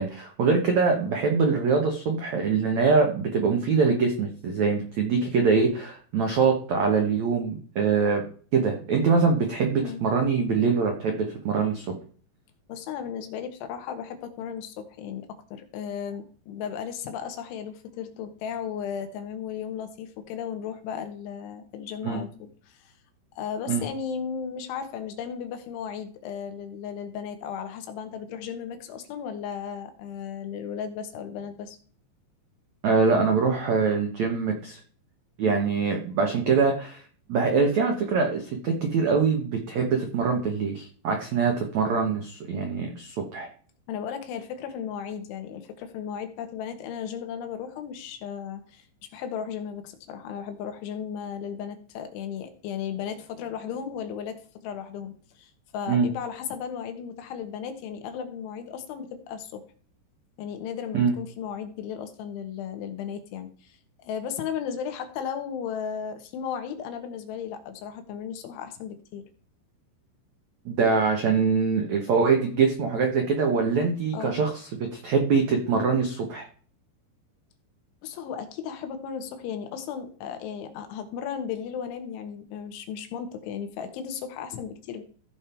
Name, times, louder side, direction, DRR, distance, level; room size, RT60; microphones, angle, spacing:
voice 1, 0.0-8.2 8.5-11.8 22.0-22.2 23.7-23.8 32.8-34.8 35.4-37.0 37.3-43.5 55.9-56.1 60.9-61.1 70.6-76.4, right 5 dB, 85° right, 3 dB, 1.5 m, -24 dB
voice 2, 9.7-10.0 12.7-22.9 23.4-31.8 35.5-35.8 43.9-48.9 49.1-59.6 60.4-69.2 74.1-74.4 78.0-85.0, left 7 dB, 80° left, 7 dB, 3.7 m, -35 dB
15.5 x 5.4 x 4.5 m, 0.43 s
omnidirectional pair, 5.5 m